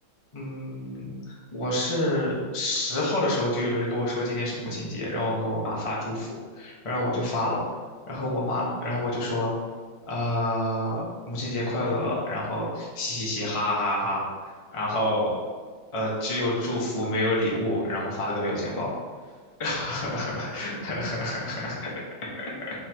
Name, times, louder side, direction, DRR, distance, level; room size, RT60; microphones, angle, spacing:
voice 1, 0.3-6.3 6.5-7.6 8.1-9.5 10.1-14.2 14.7-15.3 15.9-18.9 19.6-21.9 22.4-22.5, left 1 dB, 20° left, -5 dB, 1.0 m, -28 dB
5.6 x 3.8 x 4.6 m, 1.5 s
omnidirectional pair, 2.1 m